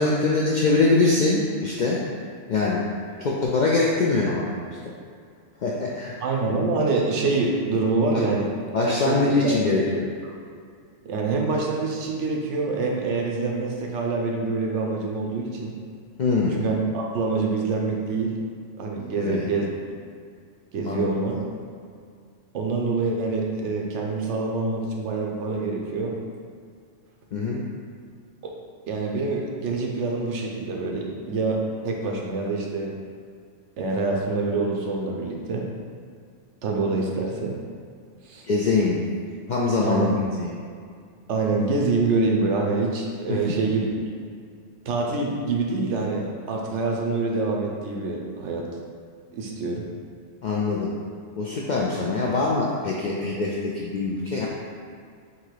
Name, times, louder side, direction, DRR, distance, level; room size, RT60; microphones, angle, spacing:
voice 1, 0.0-2.0 2.5-2.9 3.2-4.9 5.6-6.2 8.1-8.2 8.7-9.8 16.2-16.7 19.1-19.5 20.9-21.2 27.3-27.6 38.5-39.1 39.5-40.5 43.3-43.7 50.4-50.9 51.4-54.5, left 3 dB, 65° left, -4 dB, 0.4 m, -23 dB
voice 2, 6.2-8.5 8.8-9.8 11.0-15.7 16.5-18.3 18.8-19.7 20.7-21.4 22.5-26.1 28.4-28.5 28.9-32.9 33.8-35.7 36.6-37.6 38.3-38.4 39.8-40.1 41.3-44.0 44.9-48.7 49.3-49.8, right 3 dB, 75° right, 0 dB, 1.0 m, -26 dB
3.8 x 2.8 x 4.7 m, 2.2 s
omnidirectional pair, 1.2 m